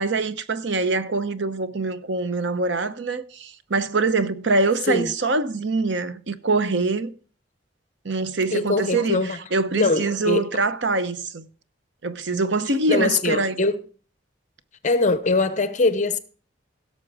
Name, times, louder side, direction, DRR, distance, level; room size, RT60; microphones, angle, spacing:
voice 1, 0.0-7.1 8.0-11.5 12.0-13.6, right 3 dB, 70° right, 0.9 m, -24 dB
voice 2, 8.5-9.4 9.8-10.5 12.9-13.8 14.8-16.2, left 3 dB, 40° left, 0.9 m, -22 dB
17.0 x 6.8 x 4.9 m
head